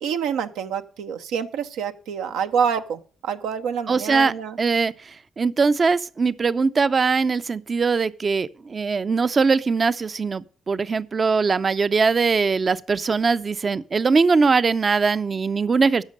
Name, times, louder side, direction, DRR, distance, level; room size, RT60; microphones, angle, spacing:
voice 1, 0.0-4.6, right 7 dB, 85° right, 0.7 m, -27 dB
voice 2, 3.9-4.9 5.4-16.0, right 4 dB, 45° right, 0.5 m, -21 dB
10.5 x 6.5 x 6.4 m
hypercardioid pair, 45°, 0 cm